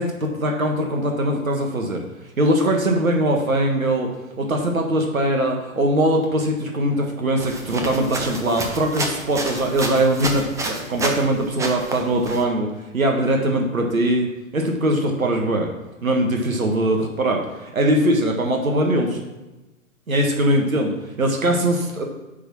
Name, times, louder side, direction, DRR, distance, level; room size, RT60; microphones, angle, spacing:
voice 1, 0.0-2.0 2.4-4.1 4.4-14.3 14.5-15.7 16.0-19.2 20.1-22.0, right 1 dB, 80° right, 2 dB, 1.5 m, -21 dB
sound 1, 7.4-11.3 11.6-12.4, right 2 dB, 5° right, 0.7 m, -29 dB
10.0 x 3.8 x 6.1 m, 1.1 s
figure-of-eight pair, 110°, 41 cm